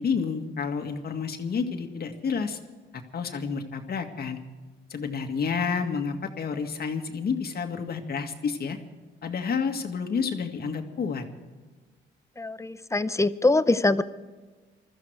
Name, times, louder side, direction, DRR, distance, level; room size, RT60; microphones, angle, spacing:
voice 1, 0.0-2.6 2.9-4.4 4.9-8.8 9.2-11.2, left 5 dB, 50° left, 5 dB, 2.0 m, -30 dB
voice 2, 12.4-14.0, left 2 dB, 15° left, 14 dB, 0.7 m, -23 dB
21.5 x 14.0 x 4.7 m, 1.3 s
cardioid pair, 90°, 20 cm